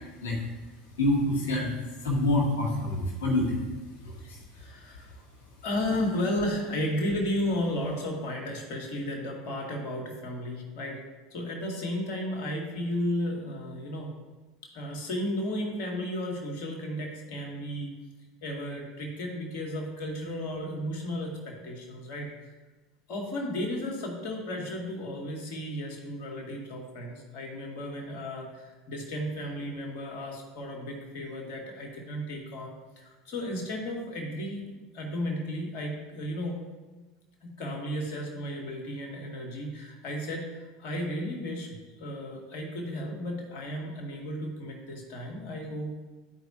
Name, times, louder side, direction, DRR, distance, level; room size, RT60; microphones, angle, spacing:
voice 1, 1.0-1.7 2.0-3.6 4.0-4.2, left 1 dB, 75° left, -2 dB, 1.9 m, -26 dB
voice 2, 4.2-5.1 5.6-11.0 11.3-14.1 14.7-17.9 18.4-22.5 23.1-36.6 37.4-46.0, left 1 dB, 60° left, 0 dB, 2.0 m, -34 dB
13.0 x 4.7 x 2.8 m, 1.2 s
hypercardioid pair, 80°, 0 cm